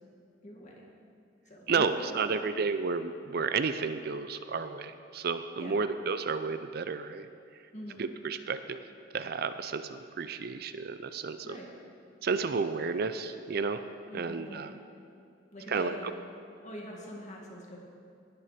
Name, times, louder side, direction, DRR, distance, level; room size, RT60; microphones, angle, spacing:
voice 1, 0.4-0.8 1.5-2.5 5.6-5.9 7.7-8.1 11.4-11.8 14.1-14.8 15.5-16.1 16.6-17.8, left 1 dB, 40° left, -2 dB, 2.1 m, -44 dB
voice 2, 1.7-7.3 8.0-8.8 9.1-11.6 12.2-13.8 14.1-14.7 15.7-16.1, right 5 dB, 55° right, 11 dB, 0.5 m, -32 dB
19.0 x 7.0 x 5.1 m, 2.5 s
head